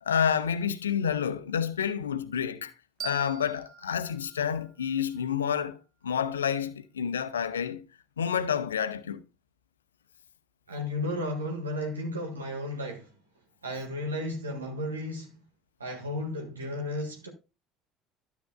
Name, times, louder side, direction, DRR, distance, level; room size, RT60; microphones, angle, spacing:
voice 1, 0.0-2.7 3.0-5.8 6.0-7.8 8.2-9.2, left 8 dB, 75° left, 0.7 m, -29 dB
sound 1, 3.0-5.8, right 8 dB, 35° right, 0.9 m, -45 dB
voice 2, 10.7-13.1 13.6-15.4 15.8-17.3, left 1 dB, 80° right, 1.7 m, -33 dB
12.5 x 7.8 x 2.2 m
figure-of-eight pair, 60°, 0 cm